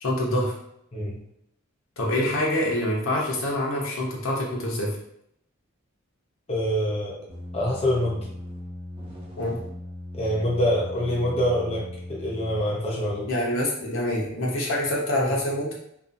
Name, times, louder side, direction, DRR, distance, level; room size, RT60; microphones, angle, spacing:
voice 1, 0.0-0.5 2.0-5.0 9.4-9.6 13.3-15.7, left 1 dB, 70° left, -3 dB, 0.7 m, -26 dB
voice 2, 6.5-7.2 7.5-8.2 10.1-13.3, equal, 30° left, -5 dB, 0.5 m, -25 dB
sound 1, 7.3-12.7, left 1 dB, 25° right, 0.6 m, -38 dB
2.4 x 2.3 x 2.5 m, 0.75 s
head